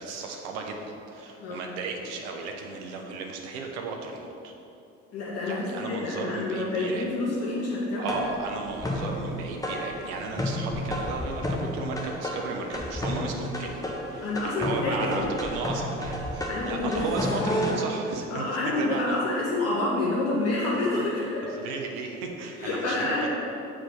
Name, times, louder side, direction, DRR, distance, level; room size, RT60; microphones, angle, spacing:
voice 1, 0.0-4.5 5.4-7.2 8.0-13.8 14.1-18.5 18.8-19.2 20.7-21.0 21.6-23.3, right 3 dB, 65° right, 2 dB, 1.0 m, -35 dB
voice 2, 5.1-8.1 14.2-15.3 16.5-17.0 18.3-21.6 22.6-23.3, left 2 dB, 40° left, -6 dB, 1.6 m, -28 dB
sound 1, 8.1-17.7, left 1 dB, 10° left, 1.2 m, -31 dB
7.3 x 4.9 x 5.7 m, 2.8 s
figure-of-eight pair, 50°, 37 cm